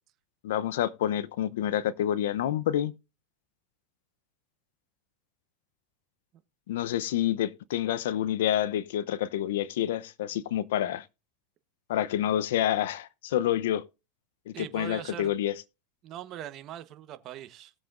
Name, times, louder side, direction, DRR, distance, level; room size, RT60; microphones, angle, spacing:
voice 1, 0.4-2.9 6.7-11.0 11.9-13.8 14.5-15.5, left 11 dB, 80° left, 0.7 m, -28 dB
voice 2, 14.5-15.4 16.0-17.7, right 12 dB, 40° right, 1.0 m, -41 dB
19.5 x 7.2 x 2.5 m
supercardioid pair, 135°, 0 cm